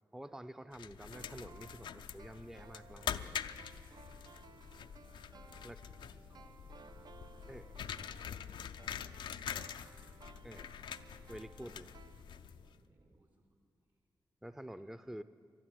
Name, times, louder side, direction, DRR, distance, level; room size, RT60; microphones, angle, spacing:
voice 1, 0.1-3.4 5.6-5.8 7.5-7.6 10.4-10.6 11.3-11.9 14.4-15.2, right 1 dB, 5° right, 12 dB, 0.5 m, -48 dB
sound 1, 0.7-12.8, left 8 dB, 85° left, 0.4 m, -45 dB
sound 2, 1.1-12.8 13.0-13.1, right 5 dB, 60° right, 0.5 m, -59 dB
sound 3, 4.0-13.2, right 2 dB, 45° right, 1.2 m, -66 dB
voice 2, 5.0-6.6 7.1-7.6 8.0-9.4 10.3-10.8 11.8-12.0 12.8-13.6 13.9-14.0 14.8-15.2, right 2 dB, 75° right, 0 dB, 3.4 m, -71 dB
12.0 x 11.5 x 9.3 m, 2.3 s
cardioid pair, 45°, 8 cm